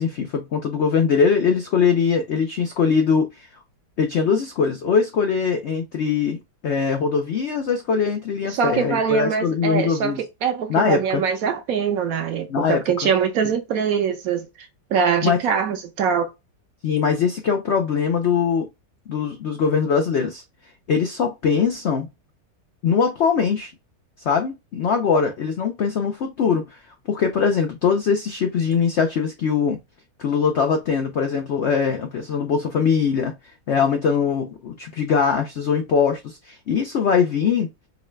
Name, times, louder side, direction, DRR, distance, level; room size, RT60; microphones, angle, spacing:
voice 1, 0.0-3.5 4.0-10.2 10.7-11.2 12.5-13.1 15.2-15.4 16.8-18.7 19.1-20.4 20.9-22.1 22.8-23.7 24.2-26.8 27.1-29.8 30.2-33.4 33.7-37.7, left 6 dB, 90° left, 0.6 m, -21 dB
voice 2, 8.5-16.3, right 6 dB, 65° right, 0.9 m, -23 dB
4.7 x 2.2 x 3.1 m
omnidirectional pair, 1.9 m